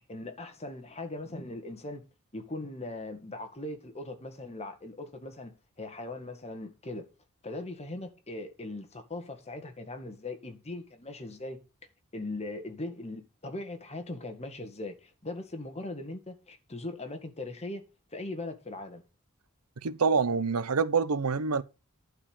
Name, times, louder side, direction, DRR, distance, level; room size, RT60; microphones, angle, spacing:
voice 1, 0.1-2.0 2.3-5.5 5.8-7.1 7.4-11.6 12.1-17.8 18.1-19.0, left 2 dB, 30° left, 1.9 m, -39 dB
voice 2, 19.8-21.6, right 5 dB, 85° right, 0.7 m, -26 dB
11.5 x 4.9 x 7.1 m
head